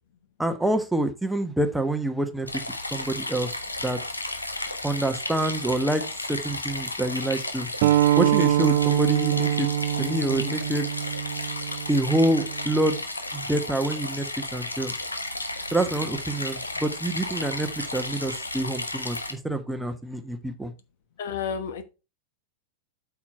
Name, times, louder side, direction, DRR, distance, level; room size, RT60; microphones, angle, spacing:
voice 1, 0.4-2.5 2.9-3.5 3.8-4.0 4.8-7.7 8.2-9.7 10.0-10.9 11.9-13.0 13.3-14.9 15.7-20.7, right 1 dB, 5° right, 1.0 m, -26 dB
sound 1, 2.5-19.3, left 2 dB, 80° left, 1.2 m, -33 dB
sound 2, 7.8-13.0, right 12 dB, 50° right, 0.5 m, -25 dB
voice 2, 21.2-21.8, left 7 dB, 55° left, 1.1 m, -30 dB
8.6 x 6.0 x 4.3 m
figure-of-eight pair, 90°, 0 cm